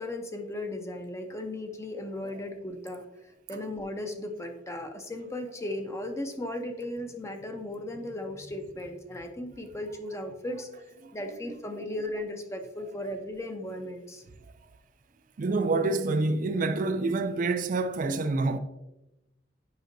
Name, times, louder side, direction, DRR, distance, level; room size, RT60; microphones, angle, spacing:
voice 1, 0.0-3.0 3.5-10.8 11.1-14.2, left 1 dB, 15° left, 0.7 m, -36 dB
voice 2, 15.4-18.6, right 3 dB, 45° right, 0.4 m, -27 dB
9.1 x 5.4 x 2.6 m
head